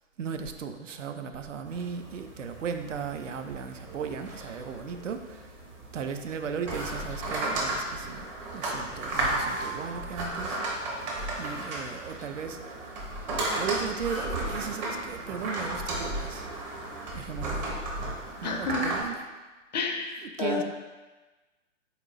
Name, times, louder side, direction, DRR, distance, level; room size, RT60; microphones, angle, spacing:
voice 1, 0.2-5.5 5.9-10.6 11.4-13.0 13.6-16.5 17.1-17.7 18.4-19.2 20.4-20.6, right 6 dB, 75° right, 7 dB, 0.5 m, -36 dB
sound 1, 1.6-19.0, right 2 dB, 35° right, 0.9 m, -34 dB
voice 2, 18.4-18.9 19.7-20.6, left 4 dB, 35° left, 4 dB, 0.4 m, -30 dB
4.3 x 3.9 x 2.5 m, 1.2 s
figure-of-eight pair, 115°, 38 cm